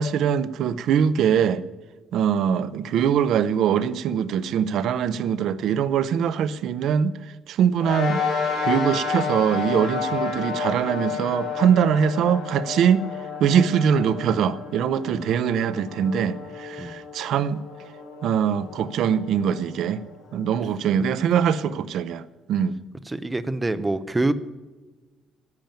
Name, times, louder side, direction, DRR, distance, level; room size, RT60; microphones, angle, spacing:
voice 1, 0.0-1.6 2.1-7.1 7.5-8.2 8.6-13.1 13.4-17.6 18.2-20.0 20.3-22.2 22.5-22.8, right 8 dB, 55° right, 0.5 m, -22 dB
sound 1, 7.8-20.5, left 5 dB, 55° left, 5.6 m, -31 dB
voice 2, 23.1-24.3, right 2 dB, 10° right, 0.5 m, -25 dB
10.5 x 8.9 x 9.0 m
cardioid pair, 175°, 0 cm